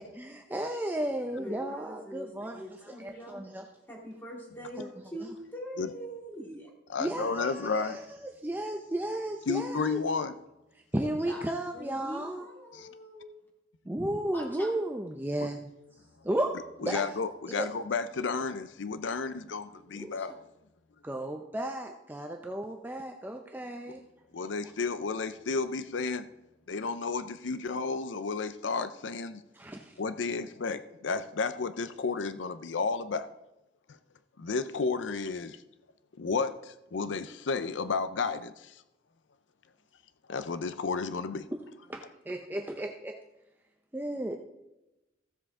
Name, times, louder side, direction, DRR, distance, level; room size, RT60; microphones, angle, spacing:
voice 1, 0.1-2.6 3.0-3.6 4.8-4.9 7.0-10.0 10.9-12.4 13.9-15.7 16.2-17.0 17.5-17.7 21.0-24.0 29.6-29.9 41.5-41.6 41.9-43.2 43.9-44.4, right 1 dB, 10° right, 3 dB, 0.5 m, -34 dB
voice 2, 1.4-3.5 3.9-6.7 11.0-11.4 11.7-13.4 14.3-14.7 19.7-20.4, equal, 10° left, -2 dB, 2.7 m, -43 dB
voice 3, 6.9-8.0 9.5-10.3 12.7-12.9 15.4-15.5 16.8-20.3 24.3-26.3 26.7-29.4 30.0-33.3 34.4-35.6 36.2-38.8 40.3-41.5, left 4 dB, 80° left, 12 dB, 0.5 m, -32 dB
15.5 x 7.5 x 3.7 m, 0.93 s
head